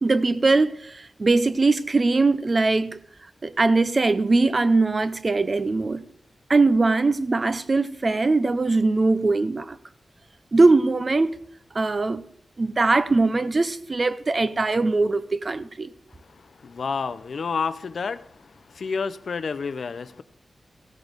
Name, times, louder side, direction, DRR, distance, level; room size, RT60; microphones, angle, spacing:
voice 1, 0.0-3.0 3.4-6.0 6.5-9.8 10.5-11.3 11.7-12.2 12.6-15.9, right 3 dB, 35° right, 0.5 m, -21 dB
voice 2, 16.6-18.3 18.7-20.2, left 5 dB, 65° left, 0.4 m, -29 dB
15.0 x 6.2 x 5.1 m
wide cardioid pair, 155°, 0 cm